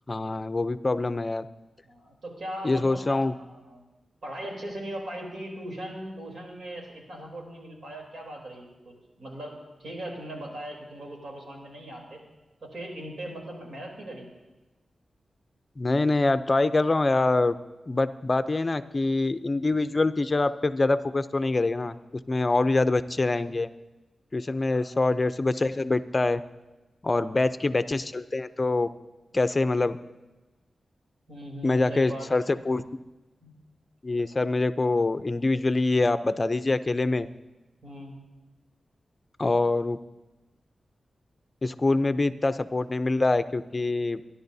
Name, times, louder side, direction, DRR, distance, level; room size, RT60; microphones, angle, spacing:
voice 1, 0.1-1.4 2.6-3.3 15.8-17.6 17.9-22.0 22.3-23.7 24.3-26.4 27.0-28.9 29.3-30.0 31.6-32.8 34.0-37.3 39.4-40.0 41.6-44.2, left 2 dB, 30° left, 11 dB, 0.6 m, -25 dB
voice 2, 1.8-3.8 4.2-12.2 12.6-14.3 24.7-24.9 27.1-27.4 31.3-32.9 33.4-33.5 37.8-38.1, right 1 dB, 75° right, 0 dB, 3.4 m, -39 dB
26.5 x 11.0 x 2.7 m, 1.1 s
wide cardioid pair, 100°, 0 cm